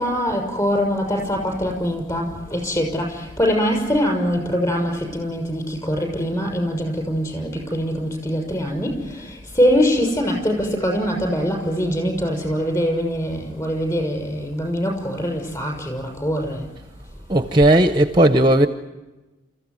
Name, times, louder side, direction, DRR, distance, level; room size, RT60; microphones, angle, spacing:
voice 1, 0.0-16.7, equal, 20° left, 2 dB, 6.2 m, -23 dB
voice 2, 17.3-18.7, right 1 dB, 20° right, 8 dB, 0.7 m, -15 dB
29.5 x 15.0 x 9.6 m, 1.1 s
head